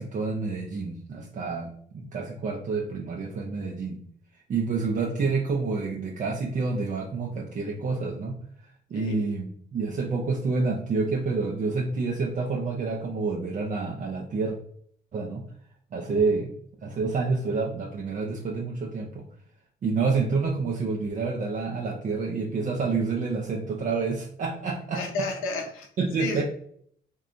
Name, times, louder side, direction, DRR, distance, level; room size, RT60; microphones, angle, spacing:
voice 1, 0.0-4.0 4.5-8.4 8.9-14.5 15.1-15.4 15.9-16.5 16.8-19.3 19.8-25.0 26.0-26.4, right 4 dB, 40° right, -1 dB, 0.4 m, -28 dB
voice 2, 8.9-9.3 24.9-25.9 26.2-26.4, left 3 dB, 90° left, 3 dB, 0.6 m, -32 dB
2.6 x 2.2 x 2.5 m, 0.63 s
cardioid pair, 90°, 20 cm